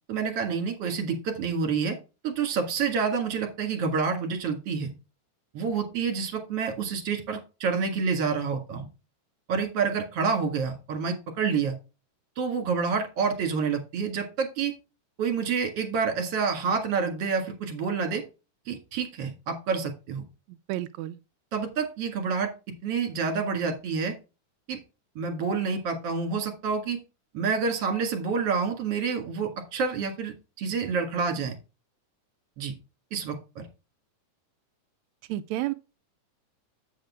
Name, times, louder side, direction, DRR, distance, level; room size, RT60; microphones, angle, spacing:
voice 1, 0.1-2.0 2.2-4.9 5.5-8.9 9.5-11.8 12.4-14.7 15.2-18.2 18.7-20.2 21.5-22.5 22.8-24.2 24.7-24.8 25.2-27.0 27.3-31.5 32.6-32.7 33.1-33.6, right 5 dB, 50° right, 2.6 m, -28 dB
voice 2, 20.5-21.2 35.3-35.7, right 15 dB, 85° right, 1.6 m, -31 dB
8.4 x 6.4 x 3.6 m
omnidirectional pair, 3.7 m